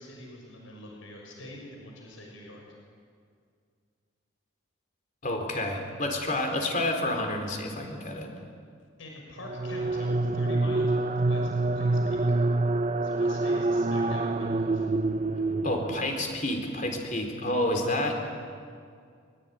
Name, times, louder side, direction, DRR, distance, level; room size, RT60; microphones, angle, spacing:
voice 1, 0.0-2.6 9.0-12.4 13.0-14.9, left 1 dB, 70° left, 0 dB, 6.7 m, -44 dB
voice 2, 5.2-8.3 15.6-18.2, left 1 dB, 40° left, 3 dB, 4.3 m, -29 dB
sound 1, 9.4-16.3, right 2 dB, 35° right, 0.7 m, -26 dB
24.0 x 23.0 x 9.6 m, 2.2 s
head